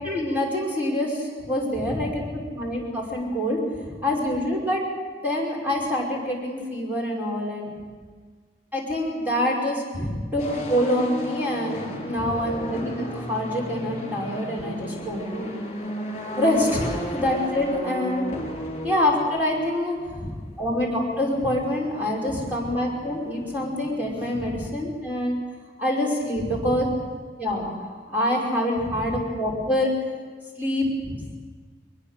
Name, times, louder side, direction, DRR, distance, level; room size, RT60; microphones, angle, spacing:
voice 1, 0.0-3.6 4.0-4.8 5.2-7.7 8.7-9.8 10.3-15.5 16.4-18.6 18.8-19.9 20.6-25.4 25.8-26.9 27.4-29.9 30.6-30.9, left 1 dB, 10° right, -4 dB, 5.3 m, -26 dB
voice 2, 1.8-2.3 9.9-10.4 12.1-12.5 20.1-20.5 22.3-22.7 24.3-24.7 26.4-26.9 28.8-29.2 31.0-31.3, equal, 20° left, -4 dB, 2.5 m, -34 dB
sound 1, 10.4-24.5, left 1 dB, 40° left, 4.2 m, -35 dB
22.0 x 21.0 x 6.7 m, 1.5 s
head